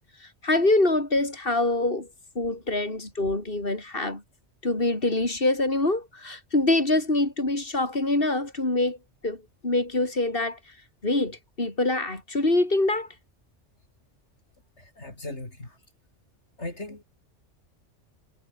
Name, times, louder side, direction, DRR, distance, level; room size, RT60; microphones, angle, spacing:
voice 1, 0.2-2.1 2.4-4.2 4.6-9.0 9.2-9.4 9.6-10.6 11.0-13.1, left 2 dB, 50° left, 5.2 m, -25 dB
voice 2, 14.8-15.8 16.6-17.0, left 2 dB, 65° left, 5.3 m, -38 dB
omnidirectional pair, 1.2 m